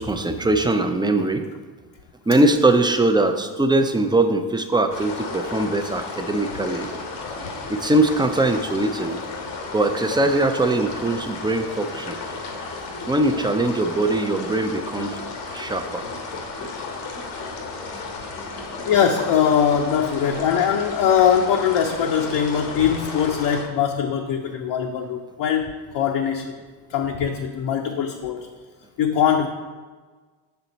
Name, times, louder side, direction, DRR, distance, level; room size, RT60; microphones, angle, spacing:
voice 1, 0.0-1.5 2.3-6.9 7.7-9.2 9.7-12.2 13.1-15.2 15.5-16.0, right 2 dB, 10° right, 7 dB, 0.4 m, -21 dB
sound 1, 4.9-23.6, left 3 dB, 90° left, 1.0 m, -33 dB
voice 2, 18.9-26.6 26.9-28.5 29.0-29.5, left 8 dB, 60° left, 2 dB, 0.6 m, -21 dB
5.8 x 4.4 x 4.0 m, 1.4 s
supercardioid pair, 65°, 47 cm